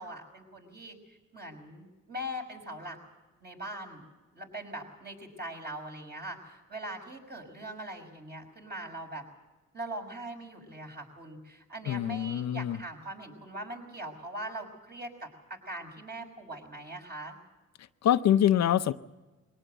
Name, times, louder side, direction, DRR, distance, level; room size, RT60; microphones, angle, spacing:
voice 1, 0.0-3.0 3.4-4.0 4.3-9.2 9.7-17.4, right 1 dB, 35° right, 3 dB, 5.8 m, -41 dB
voice 2, 11.9-12.8 17.8-18.9, left 10 dB, 60° left, 10 dB, 0.7 m, -25 dB
22.0 x 18.0 x 8.0 m, 1.2 s
cardioid pair, 90°, 30 cm